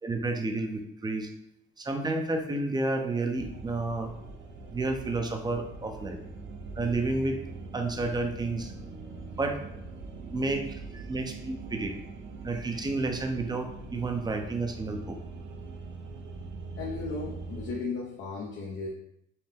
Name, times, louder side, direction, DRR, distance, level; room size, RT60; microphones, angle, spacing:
voice 1, 0.0-1.3 1.8-4.1 4.7-6.2 6.8-7.4 7.7-8.7 9.4-9.6 10.3-10.7 10.9-11.9 12.4-15.2, right 2 dB, 20° right, 4 dB, 0.6 m, -30 dB
sound 1, 3.3-17.7, right 3 dB, 70° right, 0.7 m, -42 dB
voice 2, 16.8-18.9, left 4 dB, 70° left, -3 dB, 0.8 m, -35 dB
5.5 x 2.1 x 3.4 m, 0.75 s
cardioid pair, 90°, 20 cm